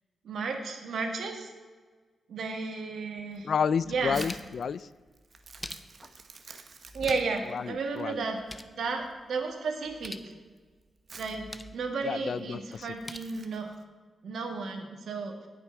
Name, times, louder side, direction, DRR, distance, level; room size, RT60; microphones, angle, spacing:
voice 1, 0.2-1.5 2.3-3.5 3.9-4.2 6.9-8.4 8.8-10.3 11.2-13.8 14.2-15.3, right 4 dB, 80° right, 3 dB, 1.7 m, -33 dB
sound 1, 3.2-3.3 3.7-4.6 5.3-6.2 6.8-7.5 7.8-7.9 8.2-8.8 9.8-10.3 11.2-11.8 12.8-13.2, left 2 dB, 15° left, 0.6 m, -44 dB
Crumpling crinkling, 3.3-13.8, right 4 dB, 50° right, 1.0 m, -52 dB
voice 2, 3.4-4.9 7.5-8.2 12.0-12.9, left 6 dB, 65° left, 17 dB, 0.3 m, -30 dB
18.0 x 6.0 x 4.5 m, 1.4 s
cardioid pair, 105°, 0 cm